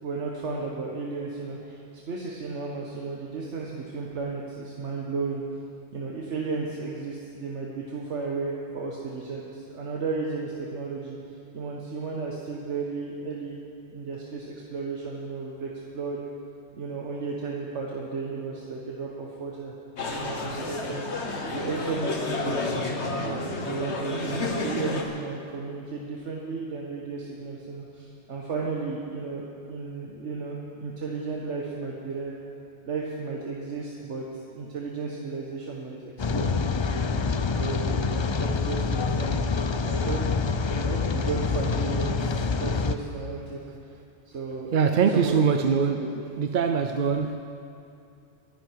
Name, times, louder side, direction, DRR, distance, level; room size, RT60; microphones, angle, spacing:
voice 1, 0.0-5.4 5.9-11.2 11.5-13.6 13.9-16.2 16.7-19.7 20.0-21.2 21.5-32.3 32.8-37.0 37.5-39.5 39.8-43.6 44.3-45.3 45.8-46.1, right 4 dB, 80° right, -2 dB, 1.6 m, -34 dB
sound 1, 20.0-25.0, left 2 dB, 70° left, 1.6 m, -30 dB
Rain, 36.2-43.0, left 5 dB, 40° left, 0.4 m, -26 dB
voice 2, 44.7-46.0 46.4-47.4, right 6 dB, 55° right, 7 dB, 0.7 m, -23 dB
24.0 x 10.5 x 4.7 m, 2.6 s
omnidirectional pair, 1.2 m